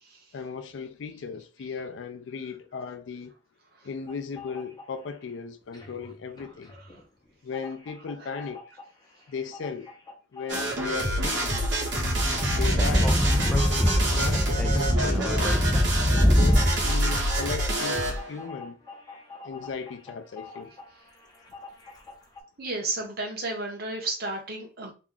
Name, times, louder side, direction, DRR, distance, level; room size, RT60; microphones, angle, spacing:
voice 1, 0.3-3.3 3.8-6.8 7.4-8.6 9.3-9.9 10.3-11.6 12.5-13.2 13.5-15.6 16.2-18.8 19.4-20.7, left 5 dB, 85° left, 0.4 m, -36 dB
sound 1, 4.1-5.3 5.6-22.4, left 4 dB, 20° left, 0.8 m, -46 dB
sound 2, 10.5-18.3, right 1 dB, 75° right, 1.3 m, -27 dB
Speech / Wind, 12.0-16.9, equal, 5° left, 0.4 m, -23 dB
voice 2, 22.6-24.9, right 2 dB, 55° right, 1.0 m, -32 dB
2.9 x 2.3 x 3.7 m
head